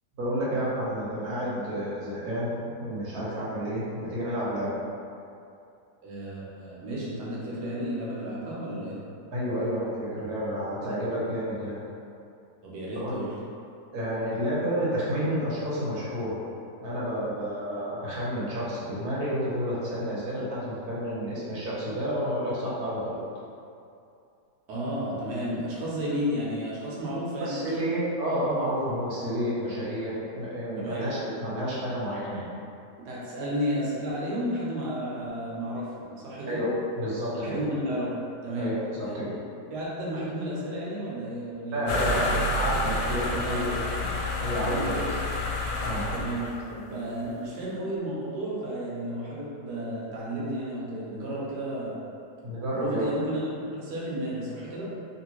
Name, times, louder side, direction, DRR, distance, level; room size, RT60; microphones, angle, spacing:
voice 1, 0.2-4.7 9.3-11.8 12.9-13.2 13.9-16.4 16.8-23.2 27.4-32.6 36.4-37.6 38.6-39.3 41.7-42.2 42.5-44.1 44.4-45.0 45.8-46.1 52.4-53.0, equal, 70° right, -8 dB, 1.5 m, -30 dB
voice 2, 6.0-9.0 12.6-13.3 24.7-27.9 30.8-31.1 33.0-36.7 37.3-38.1 38.4-38.7 39.0-39.2 39.7-42.3 43.3-43.6 44.6-45.1 46.1-52.0 52.7-53.5 53.8-54.8, equal, 90° right, -6 dB, 1.4 m, -32 dB
sound 1, 41.9-46.7, left 1 dB, 85° left, 1.2 m, -29 dB
3.2 x 2.9 x 3.0 m, 2.6 s
omnidirectional pair, 1.7 m